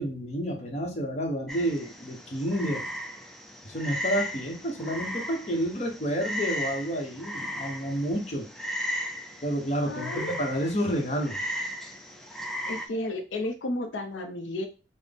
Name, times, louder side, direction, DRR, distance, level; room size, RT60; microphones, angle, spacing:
voice 1, 0.0-2.9 3.6-8.5 9.4-11.4, equal, 40° left, 1 dB, 0.7 m, -30 dB
Frog, 1.5-12.9, equal, ahead, 0.3 m, -36 dB
voice 2, 9.9-10.4 12.7-14.7, left 1 dB, 90° left, 5 dB, 0.5 m, -32 dB
3.9 x 2.0 x 3.4 m, 0.31 s
head